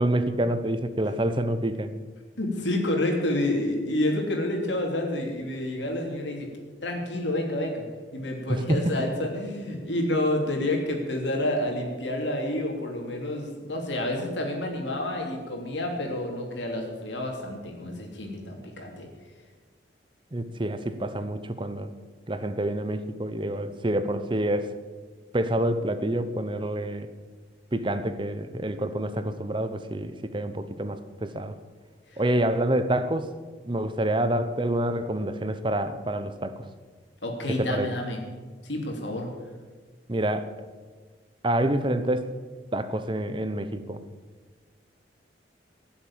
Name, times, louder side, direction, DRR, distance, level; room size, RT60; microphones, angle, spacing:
voice 1, 0.0-2.0 8.5-9.1 20.3-21.9 22.3-24.7 25.3-27.1 27.7-31.5 32.2-33.3 33.6-36.7 37.6-37.9 40.1-40.5 41.4-42.3 42.7-44.0, right 1 dB, 25° right, 11 dB, 0.8 m, -27 dB
voice 2, 2.4-6.5 6.8-7.9 8.1-19.1 32.1-32.2 37.2-38.2 38.6-39.3, left 1 dB, 85° left, 1 dB, 3.0 m, -29 dB
16.5 x 7.3 x 8.9 m, 1.4 s
head